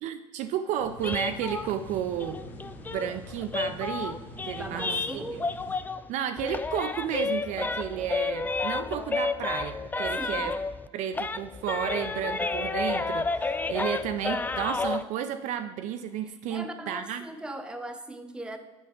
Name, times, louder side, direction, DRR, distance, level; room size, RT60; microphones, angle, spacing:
voice 1, 0.0-2.5 2.9-4.2 4.5-5.5 6.1-10.5 10.9-17.2, right 9 dB, 55° right, 7 dB, 0.5 m, -32 dB
sound 1, 0.8-5.8, left 1 dB, 55° left, 1.3 m, -45 dB
sound 2, 1.0-6.1 6.4-10.9 11.1-15.0, left 3 dB, 10° left, 0.3 m, -31 dB
voice 2, 4.6-5.5 10.2-10.5 16.5-18.6, right 1 dB, 5° right, 6 dB, 0.8 m, -39 dB
7.7 x 5.5 x 3.7 m, 1.2 s
hypercardioid pair, 65°, 15 cm